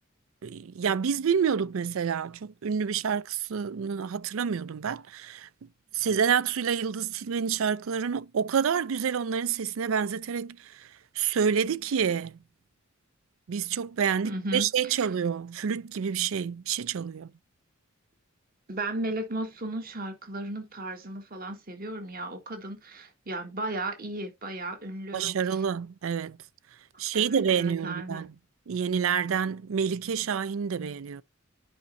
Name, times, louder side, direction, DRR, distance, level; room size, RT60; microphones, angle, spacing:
voice 1, 0.4-5.5 5.9-10.9 11.2-12.4 13.5-17.3 25.1-26.4 27.0-28.3 28.7-31.2, right 7 dB, 70° right, 0.4 m, -28 dB
voice 2, 14.2-15.1 18.7-25.6 27.1-28.3, right 1 dB, 45° right, 1.6 m, -35 dB
11.0 x 5.2 x 2.6 m
head